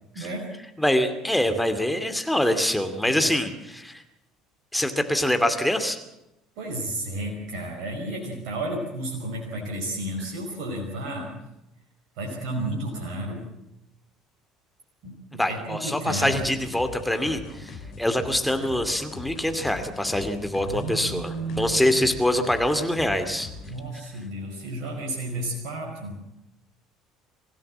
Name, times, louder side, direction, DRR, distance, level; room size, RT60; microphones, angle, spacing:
voice 1, 0.1-0.5 1.8-1.9 3.0-3.3 6.6-11.3 12.2-13.4 15.0-16.4 20.6-21.9 23.7-26.2, right 1 dB, 60° right, 0 dB, 5.1 m, -32 dB
voice 2, 0.8-4.0 4.7-6.0 15.4-23.5, left 1 dB, 5° left, 7 dB, 2.5 m, -24 dB
sound 1, 16.3-23.9, left 4 dB, 50° left, 3.3 m, -41 dB
24.5 x 16.5 x 7.5 m, 0.89 s
figure-of-eight pair, 60°, 0 cm